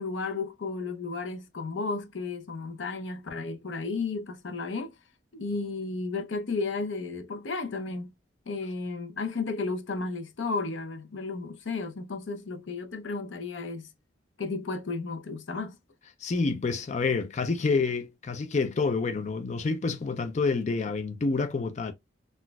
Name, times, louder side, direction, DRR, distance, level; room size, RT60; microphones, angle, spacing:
voice 1, 0.0-4.9 5.3-8.1 8.5-13.9 14.4-15.8, left 3 dB, 80° left, 0.6 m, -33 dB
voice 2, 16.2-21.9, left 4 dB, 40° left, 0.4 m, -28 dB
4.0 x 2.4 x 2.2 m
head